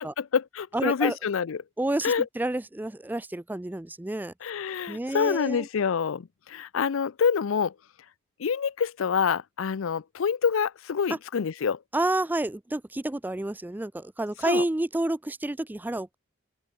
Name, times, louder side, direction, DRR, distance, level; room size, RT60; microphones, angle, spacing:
voice 1, 0.0-1.6 2.0-2.3 4.4-7.7 8.4-11.8 14.4-14.6, left 6 dB, 75° left, 0.5 m, -27 dB
voice 2, 0.7-1.2 1.8-4.3 4.9-5.7 11.9-16.1, right 1 dB, 10° right, 0.4 m, -29 dB
open air
head